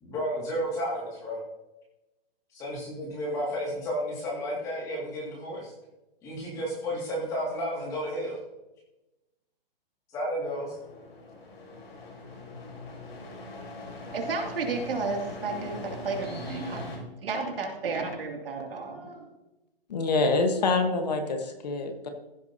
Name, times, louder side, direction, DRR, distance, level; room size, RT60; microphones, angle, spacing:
voice 1, 0.0-1.4 2.5-5.7 6.2-8.4 10.1-10.8, equal, 10° left, -3 dB, 2.2 m, -32 dB
sound 1, 10.4-17.0, left 2 dB, 80° left, 4.1 m, -41 dB
voice 2, 14.1-16.9 17.2-19.3, right 4 dB, 70° right, 1 dB, 2.6 m, -32 dB
voice 3, 19.9-22.1, left 3 dB, 45° left, 6 dB, 1.3 m, -26 dB
15.0 x 8.1 x 2.8 m, 0.97 s
hypercardioid pair, 170°, 29 cm